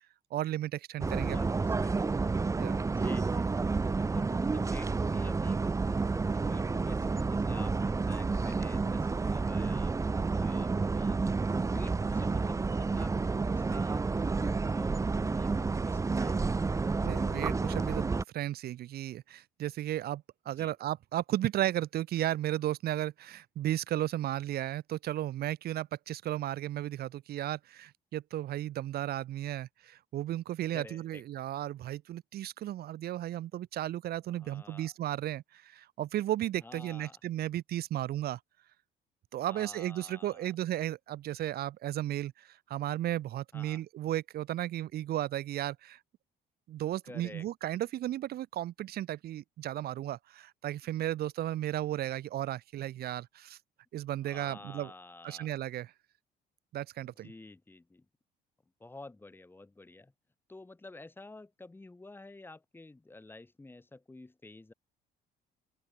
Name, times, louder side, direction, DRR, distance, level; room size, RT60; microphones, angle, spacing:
voice 1, 0.3-1.4 2.6-2.8 16.9-38.4 39.3-46.0 46.7-53.6 53.9-54.9 55.2-55.9 56.7-57.3, right 13 dB, 65° right, 3.2 m, -34 dB
sound 1, 1.0-18.2, right 4 dB, 20° right, 0.9 m, -30 dB
voice 2, 1.3-2.1 3.0-3.8 4.1-11.2 11.6-16.8 20.6-20.7 30.7-31.2 34.3-34.9 36.6-37.2 39.5-40.5 43.5-43.8 47.1-47.5 54.2-55.5 57.0-58.0 58.8-60.1 60.5-64.7, left 2 dB, 10° left, 2.7 m, -50 dB
open air
cardioid pair, 110°, 17 cm